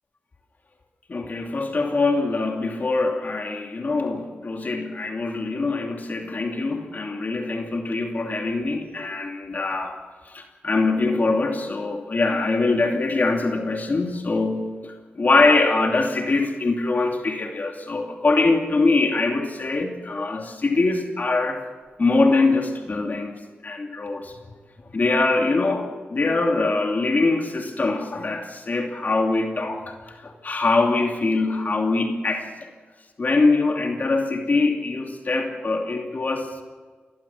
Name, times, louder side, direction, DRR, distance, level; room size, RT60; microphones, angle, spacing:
voice 1, 1.1-10.0 10.3-21.6 22.0-23.3 23.6-24.3 24.9-32.5 33.2-36.5, left 3 dB, 50° left, 3 dB, 2.7 m, -23 dB
23.5 x 17.5 x 7.3 m, 1.4 s
cardioid pair, 70°, 4 cm